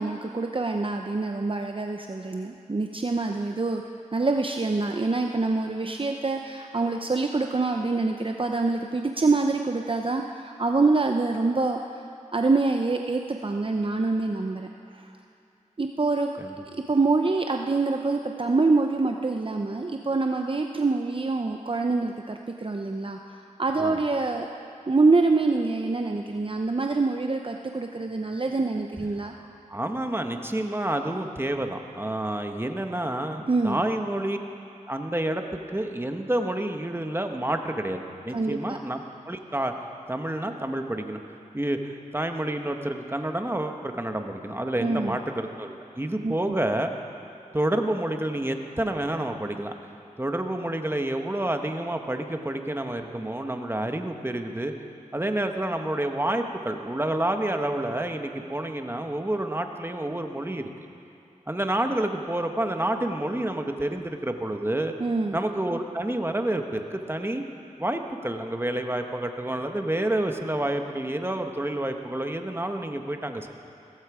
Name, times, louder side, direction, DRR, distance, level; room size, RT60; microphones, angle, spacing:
voice 1, 0.0-3.8 4.1-12.0 12.3-15.1 15.8-16.3 16.9-24.5 24.9-29.3 33.5-33.8 38.3-38.8 44.8-45.2 46.2-46.5 65.0-65.4, right 3 dB, 40° right, 3 dB, 0.7 m, -25 dB
voice 2, 29.7-34.4 34.9-35.4 35.7-39.0 39.2-39.7 40.1-41.2 41.5-46.9 47.5-49.7 50.2-54.7 55.1-60.7 61.5-64.9 65.3-67.4 67.8-73.5, right 1 dB, 15° right, 5 dB, 1.3 m, -29 dB
16.5 x 15.5 x 5.0 m, 2.6 s
cardioid pair, 40°, 14 cm